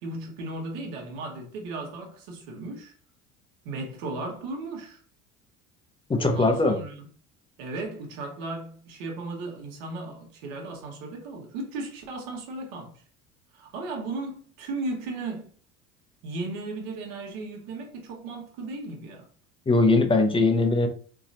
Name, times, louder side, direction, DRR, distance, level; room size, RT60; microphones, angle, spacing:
voice 1, 0.0-2.9 3.6-5.0 6.2-7.1 7.6-13.0 13.5-15.5 16.2-19.3, right 2 dB, 65° right, 1.2 m, -36 dB
voice 2, 6.1-6.8 19.7-20.9, left 2 dB, 15° left, 0.6 m, -21 dB
3.9 x 2.9 x 2.6 m
hypercardioid pair, 65°, 38 cm